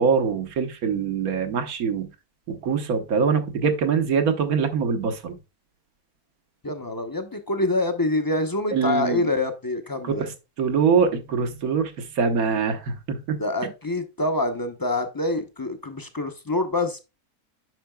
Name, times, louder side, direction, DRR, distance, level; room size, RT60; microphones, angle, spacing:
voice 1, 0.0-2.1 2.5-5.4 8.7-9.3 10.0-10.2 10.6-13.4, right 6 dB, 80° right, 1.5 m, -23 dB
voice 2, 6.6-10.3 13.4-17.0, left 2 dB, 25° left, 0.5 m, -26 dB
9.3 x 5.7 x 2.3 m
omnidirectional pair, 1.5 m